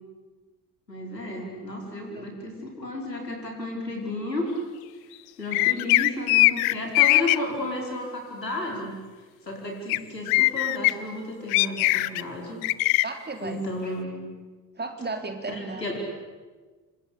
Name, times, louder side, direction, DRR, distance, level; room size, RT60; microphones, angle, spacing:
voice 1, 0.9-4.5 5.4-8.9 9.4-12.6 13.4-14.3 15.5-16.0, left 1 dB, 90° left, 1 dB, 5.1 m, -33 dB
sound 1, 5.5-7.4 9.9-10.0 10.3-10.9 11.5-12.2 12.6-13.0, left 23 dB, 60° left, 0.9 m, -20 dB
voice 2, 13.0-13.6 14.8-15.9, right 3 dB, 20° right, 6 dB, 3.7 m, -34 dB
28.5 x 24.0 x 8.6 m, 1.4 s
figure-of-eight pair, 60°, 48 cm